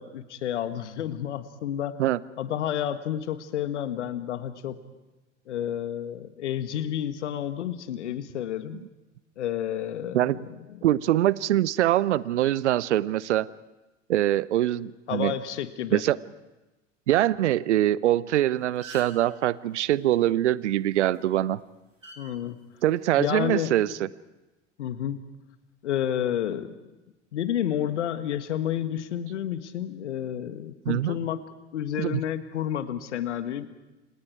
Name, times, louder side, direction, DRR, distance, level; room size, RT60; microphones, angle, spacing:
voice 1, 0.0-2.0 2.4-4.8 5.5-8.8 9.4-10.4 10.7-10.8 15.1-16.0 22.2-22.6 23.2-23.7 24.8-25.2 25.8-26.7 27.3-31.5 31.7-33.7, left 10 dB, 70° left, 12 dB, 1.6 m, -30 dB
voice 2, 10.8-13.5 14.1-15.3 15.9-16.2 17.1-21.6 22.8-24.1 30.9-31.2 32.0-32.2, right 13 dB, 70° right, 20 dB, 0.8 m, -23 dB
sound 1, 18.3-18.4 18.6-19.3 20.9-21.2 22.0-22.2 23.2-23.5, right 2 dB, 90° right, 3.4 m, -43 dB
29.5 x 27.0 x 4.7 m, 1.1 s
figure-of-eight pair, 75°, 37 cm